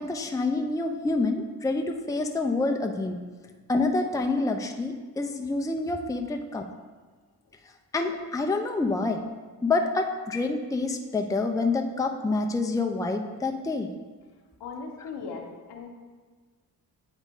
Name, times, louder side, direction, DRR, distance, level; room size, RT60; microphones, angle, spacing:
voice 1, 0.0-3.2 3.7-6.6 7.9-9.2 9.6-13.9, left 3 dB, 10° left, 3 dB, 0.6 m, -27 dB
voice 2, 14.6-15.9, left 4 dB, 65° left, 1 dB, 1.2 m, -38 dB
8.6 x 4.0 x 3.8 m, 1.4 s
hypercardioid pair, 45°, 43 cm